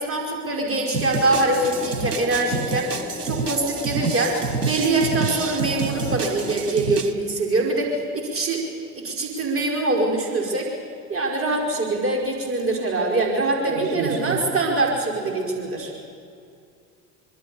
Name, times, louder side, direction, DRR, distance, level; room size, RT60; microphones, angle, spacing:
voice 1, 0.0-2.9 3.2-8.6 8.9-10.7 11.1-15.9, right 2 dB, 30° right, 0 dB, 5.1 m, -23 dB
sound 1, 0.9-7.1, right 5 dB, 85° right, 1.1 m, -28 dB
sound 2, 1.2-6.6, left 3 dB, 15° left, 1.7 m, -36 dB
voice 2, 13.7-14.4 15.9-16.0, right 7 dB, 65° right, -1 dB, 4.9 m, -29 dB
25.0 x 23.0 x 7.1 m, 2.4 s
figure-of-eight pair, 70°, 46 cm